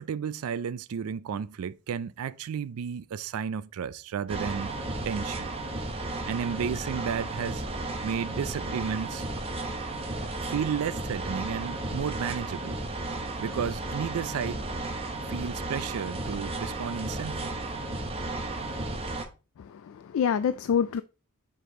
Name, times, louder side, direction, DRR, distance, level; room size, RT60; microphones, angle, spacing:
voice 1, 0.0-4.7 5.0-5.5 6.3-7.6 8.0-9.3 10.5-12.8 13.4-14.6 15.3-17.5, right 7 dB, 70° right, 0.4 m, -32 dB
sound 1, 4.3-19.3, right 2 dB, 25° right, 0.8 m, -34 dB
voice 2, 19.6-21.0, left 7 dB, 65° left, 0.3 m, -27 dB
5.1 x 4.8 x 3.8 m
head